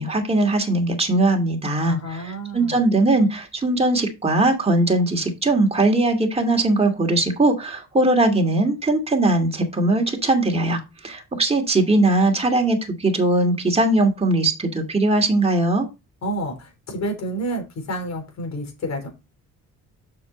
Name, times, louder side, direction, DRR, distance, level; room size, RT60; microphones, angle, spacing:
voice 1, 0.0-15.9, right 2 dB, 20° right, 2.5 m, -20 dB
voice 2, 1.8-2.8 16.2-19.1, right 1 dB, 60° left, 4.0 m, -29 dB
7.0 x 6.5 x 4.1 m
cardioid pair, 90°, 30 cm